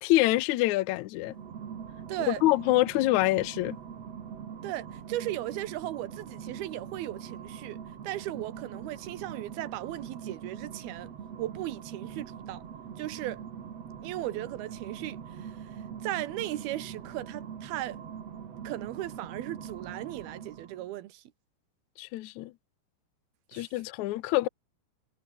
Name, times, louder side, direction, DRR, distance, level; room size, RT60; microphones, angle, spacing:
voice 1, 0.0-1.3 2.3-3.8 22.0-22.5 23.5-24.5, left 17 dB, 75° left, 1.7 m, -26 dB
sound 1, 1.2-20.9, right 8 dB, 45° right, 2.9 m, -43 dB
voice 2, 2.1-2.4 4.6-7.8 8.0-11.1 11.4-12.6 13.0-13.4 14.0-15.7 16.0-18.0 18.6-21.2 23.5-23.7, right 15 dB, 85° right, 3.1 m, -37 dB
omnidirectional pair, 4.3 m